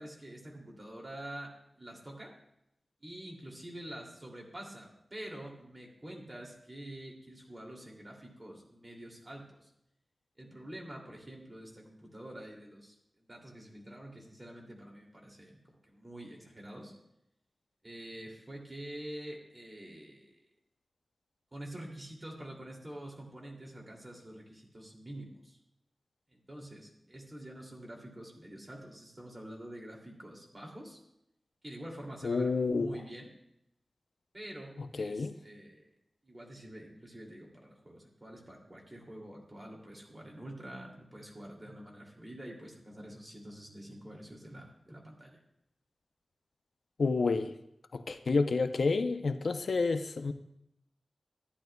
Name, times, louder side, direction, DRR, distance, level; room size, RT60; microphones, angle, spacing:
voice 1, 0.0-2.3 3.0-9.7 10.4-16.9 17.8-20.4 21.5-25.6 26.3-31.0 31.6-33.3 34.3-35.9 36.2-45.4, right 1 dB, 25° right, -1 dB, 2.5 m, -47 dB
voice 2, 32.2-32.9 35.0-35.3 47.0-47.5 47.9-50.3, left 4 dB, 75° left, 9 dB, 0.5 m, -29 dB
14.0 x 10.5 x 2.2 m, 0.79 s
wide cardioid pair, 85°, 0 cm